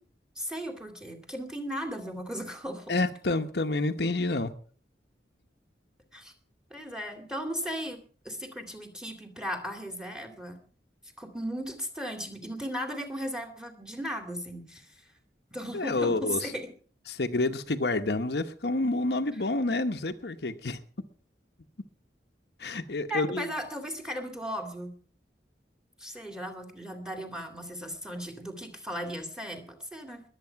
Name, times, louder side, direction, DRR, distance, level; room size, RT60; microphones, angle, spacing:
voice 1, 0.4-2.9 6.1-6.3 6.7-8.0 8.2-10.6 11.2-14.9 15.5-16.7 23.1-25.0 26.0-30.2, equal, 5° right, 7 dB, 2.4 m, -36 dB
voice 2, 2.9-4.5 15.7-16.5 17.1-20.8 22.6-23.5, left 2 dB, 65° left, 7 dB, 1.0 m, -28 dB
21.5 x 8.4 x 5.8 m, 0.43 s
head